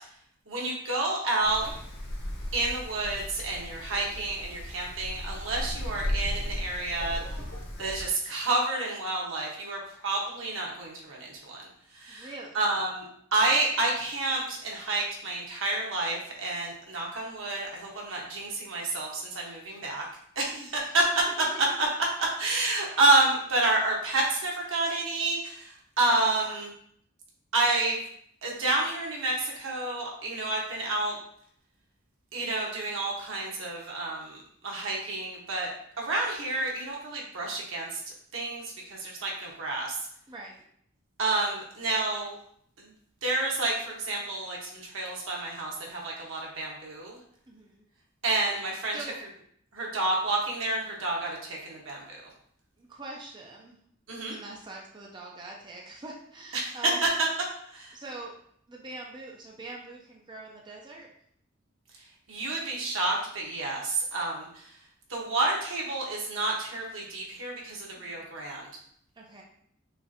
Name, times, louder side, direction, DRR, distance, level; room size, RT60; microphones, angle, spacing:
voice 1, 0.5-1.7 2.5-7.2 7.8-11.7 11.9-12.3 12.5-13.0 13.3-20.0 20.4-21.0 21.8-21.9 22.4-26.7 27.5-28.0 28.4-31.2 32.3-35.7 36.0-38.0 38.3-40.0 41.2-42.3 42.8-42.9 43.2-47.2 48.2-49.0 49.7-52.2 54.1-54.3 56.5-56.8 57.0-57.1 57.7-57.9 62.3-64.6 65.1-68.7, right 2 dB, 85° right, -2 dB, 1.2 m, -29 dB
Wind, 1.4-8.0, equal, 70° left, 1.3 m, -36 dB
voice 2, 12.1-12.6 20.5-21.0 21.2-21.6 26.4-26.6 40.3-40.6 47.5-47.8 48.9-49.2 52.8-53.8 54.1-57.1 57.9-58.4 58.7-61.1 68.0-68.3 69.2-69.4, right 2 dB, 25° right, -1 dB, 0.5 m, -44 dB
5.7 x 2.5 x 2.7 m, 0.66 s
head